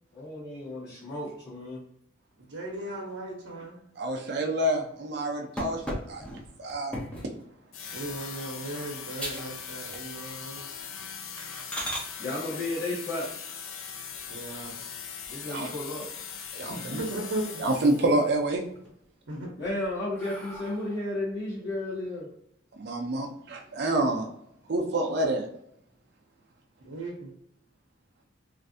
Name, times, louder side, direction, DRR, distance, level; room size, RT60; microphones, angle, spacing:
voice 1, 0.1-1.8 12.2-13.3 15.3-16.1 19.6-22.3, left 1 dB, 55° left, -11 dB, 1.3 m, -33 dB
voice 2, 2.4-3.8 7.9-10.6 14.3-14.8 16.7-17.6 19.3-19.5 26.8-27.3, right 1 dB, 85° right, -2 dB, 0.7 m, -36 dB
voice 3, 4.0-5.8 6.1-6.2 6.6-6.9 15.5-15.7 16.6-17.0 17.6-18.6 22.8-24.3 24.7-25.4, right 1 dB, 55° right, 1 dB, 0.5 m, -27 dB
sound 1, 5.6-7.4 7.9-8.2 8.7-8.8 9.2-9.5 9.8-10.4 10.7-10.9 11.4-12.1 14.1-14.8 15.2-15.3 15.7-15.8 16.1-16.9 17.3-17.9 18.3-18.9 19.4-21.1, equal, 5° left, 0.5 m, -38 dB
sound 2, 7.7-18.3, left 7 dB, 85° left, 0.4 m, -40 dB
3.2 x 2.5 x 2.6 m, 0.72 s
head